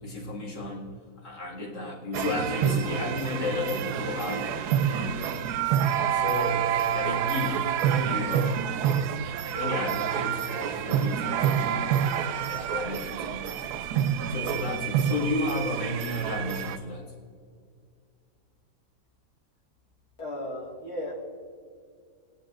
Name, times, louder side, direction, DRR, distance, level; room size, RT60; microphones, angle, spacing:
voice 1, 0.0-4.6 4.9-5.2 5.7-5.8 6.1-8.7 9.5-12.2 12.4-13.7 14.3-17.0, left 1 dB, 85° left, -3 dB, 2.8 m, -33 dB
sound 1, 2.1-16.8, right 9 dB, 75° right, 1.1 m, -28 dB
voice 2, 20.2-21.1, left 1 dB, 60° left, -4 dB, 2.6 m, -35 dB
18.0 x 10.5 x 2.5 m, 2.2 s
omnidirectional pair, 1.8 m